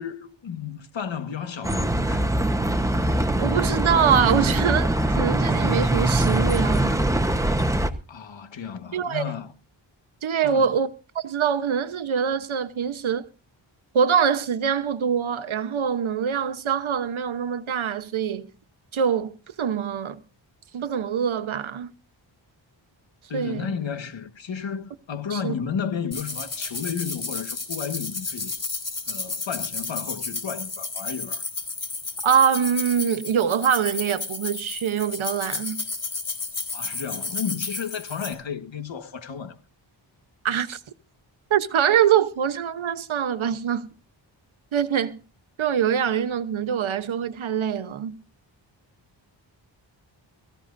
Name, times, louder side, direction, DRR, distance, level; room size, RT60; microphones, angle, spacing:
voice 1, 0.0-2.3 8.1-9.5 10.4-10.7 23.3-28.5 29.1-31.4 36.7-39.6, left 7 dB, 70° left, 1.7 m, -33 dB
Bus, 1.6-7.9, right 1 dB, 5° right, 1.1 m, -22 dB
voice 2, 3.4-7.0 8.9-9.3 10.2-10.9 11.1-13.3 13.9-18.5 18.9-20.2 20.7-21.9 23.3-23.7 25.3-25.5 32.2-35.9 40.4-40.8 41.5-43.9 44.7-45.2 45.6-48.2, right 8 dB, 80° right, 1.2 m, -24 dB
sound 1, 26.1-38.3, left 4 dB, 40° left, 4.2 m, -32 dB
22.5 x 15.0 x 2.7 m
wide cardioid pair, 90°, 47 cm